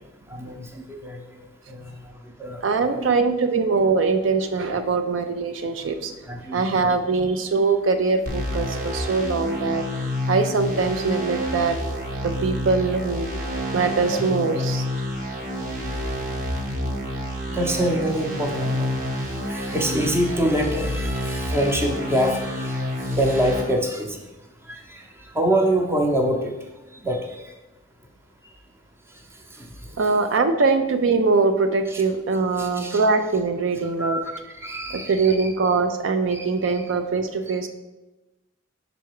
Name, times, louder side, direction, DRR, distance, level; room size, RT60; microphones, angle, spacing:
voice 1, 0.3-2.6 2.9-3.1 6.2-6.9 14.1-14.2 15.2-27.5 28.4-28.6 29.1-30.1 31.9-32.0 32.6-33.0 34.0-35.5 36.3-36.9 37.5-37.7, right 1 dB, 15° right, 2 dB, 0.7 m, -27 dB
voice 2, 2.6-6.1 6.5-11.8 12.2-13.3 13.7-14.8 30.0-34.2 34.9-37.7, right 4 dB, 70° right, 8 dB, 0.4 m, -22 dB
sound 1, 8.3-23.6, left 1 dB, 45° right, 1.0 m, -28 dB
5.6 x 4.0 x 4.7 m, 1.1 s
head